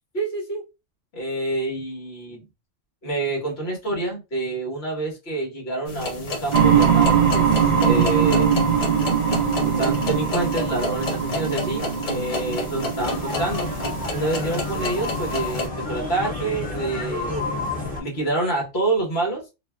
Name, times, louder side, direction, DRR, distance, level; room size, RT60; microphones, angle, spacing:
voice 1, 0.1-0.6 1.1-2.4 3.0-8.5 9.6-13.7 14.1-17.4 18.0-19.4, right 2 dB, 55° left, 1.4 m, -27 dB
sound 1, 5.9-15.7, left 3 dB, 75° left, 1.2 m, -31 dB
sound 2, 6.5-16.1, right 7 dB, 45° right, 0.5 m, -22 dB
sound 3, 13.0-18.0, left 2 dB, 5° left, 1.0 m, -30 dB
3.2 x 2.2 x 2.2 m
omnidirectional pair, 1.3 m